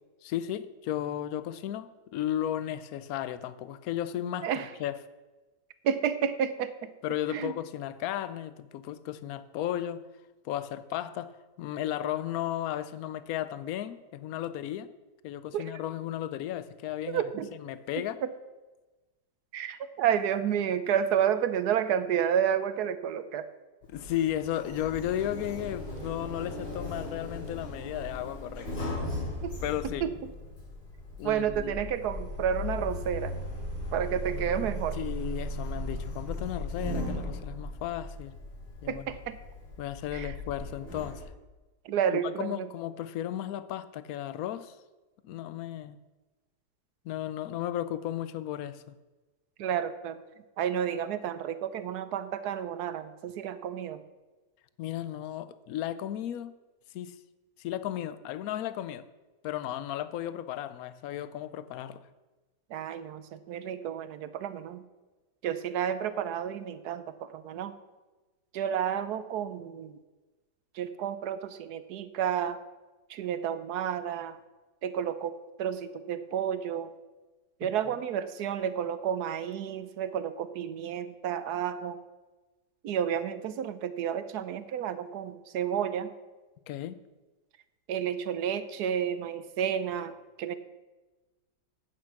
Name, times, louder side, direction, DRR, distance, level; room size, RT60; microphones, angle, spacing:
voice 1, 0.2-4.5 4.8-5.0 7.0-10.0 10.4-11.3 11.6-14.9 15.2-17.2 17.6-18.2 23.9-28.9 29.6-30.0 31.2-31.7 35.0-38.3 38.8-39.1 39.8-41.2 42.1-44.8 45.2-46.0 47.0-49.0 54.8-56.5 56.9-57.2 57.6-59.0 59.4-62.1 86.7-87.0, left 11 dB, 65° left, 14 dB, 1.0 m, -34 dB
voice 2, 5.8-6.9 7.3-7.5 15.5-15.7 17.1-17.5 19.5-23.5 29.4-29.6 30.0-30.1 31.2-33.3 33.9-35.0 38.9-39.4 40.1-40.3 41.8-42.7 49.6-50.2 50.6-54.0 62.7-64.8 65.4-67.7 68.5-70.0 70.7-72.6 73.1-74.4 74.8-76.9 77.6-82.0 82.8-86.1 87.9-90.5, right 9 dB, 65° right, 13 dB, 1.2 m, -31 dB
Sliding door, 23.8-41.2, left 1 dB, 80° left, 4.9 m, -37 dB
10.5 x 8.7 x 6.0 m, 1.2 s
omnidirectional pair, 1.9 m